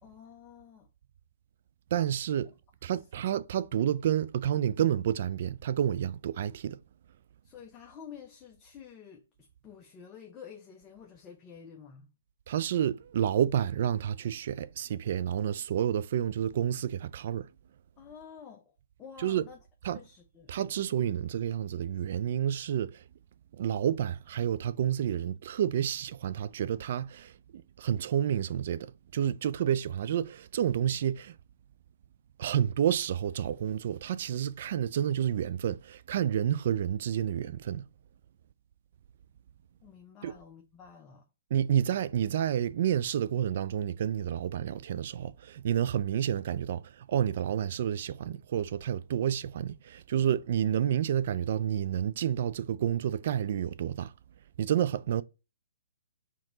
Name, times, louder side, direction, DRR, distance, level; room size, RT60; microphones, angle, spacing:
voice 1, 0.0-0.9 2.9-3.0 7.4-12.1 18.0-19.6 19.8-20.5 39.8-41.3, left 7 dB, 20° left, 0.7 m, -50 dB
voice 2, 1.9-2.5 2.8-6.8 12.5-17.5 19.2-19.5 19.8-20.0 20.5-23.0 23.5-28.9 29.1-31.3 32.4-37.9 40.2-40.3 41.5-54.1 54.6-55.2, right 10 dB, 55° right, 0.3 m, -29 dB
4.4 x 2.9 x 3.7 m
hypercardioid pair, 135°, 0 cm